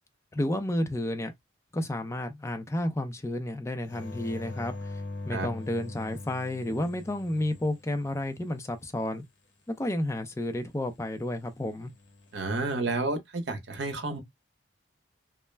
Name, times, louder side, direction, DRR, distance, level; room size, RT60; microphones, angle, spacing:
voice 1, 0.3-1.3 1.7-5.0 5.3-9.2 9.8-11.9, left 1 dB, 15° left, 0.4 m, -31 dB
sound 1, 3.9-8.5 11.8-12.3, left 2 dB, 70° left, 0.9 m, -41 dB
voice 2, 12.3-14.2, right 2 dB, 65° right, 0.8 m, -30 dB
2.2 x 2.1 x 3.2 m
head